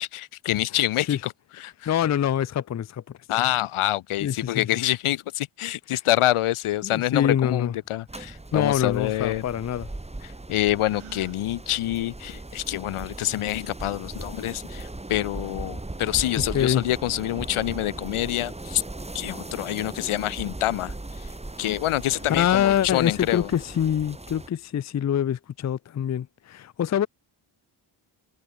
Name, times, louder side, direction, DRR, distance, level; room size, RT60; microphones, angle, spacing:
voice 1, 0.0-1.9 3.3-9.4 10.2-18.8 19.1-21.3 21.6-23.5, left 14 dB, 80° left, 0.7 m, -26 dB
voice 2, 1.9-3.0 4.2-4.3 6.8-7.7 8.5-9.9 16.5-16.8 22.4-27.1, left 10 dB, 35° left, 0.5 m, -24 dB
sound 1, 6.2-24.7, left 2 dB, 20° left, 6.1 m, -61 dB
sound 2, 8.1-24.5, right 2 dB, 10° right, 1.9 m, -38 dB
Gasp, 10.8-11.4, right 9 dB, 75° right, 3.4 m, -46 dB
cardioid pair, 85°, 50 cm